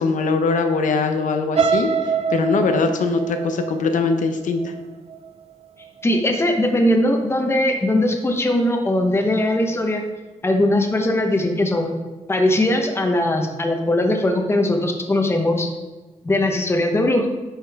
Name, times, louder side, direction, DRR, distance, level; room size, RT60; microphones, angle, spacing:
voice 1, 0.0-4.7, left 4 dB, 85° left, 6 dB, 0.7 m, -21 dB
sound 1, 1.5-5.5 6.0-6.3 6.6-6.7, right 6 dB, 50° right, 0.5 m, -25 dB
voice 2, 6.0-10.0 10.4-12.0 12.3-15.7 16.2-17.3, left 1 dB, 20° left, 3 dB, 1.0 m, -20 dB
10.0 x 5.4 x 3.5 m, 1.2 s
wide cardioid pair, 135°, 13 cm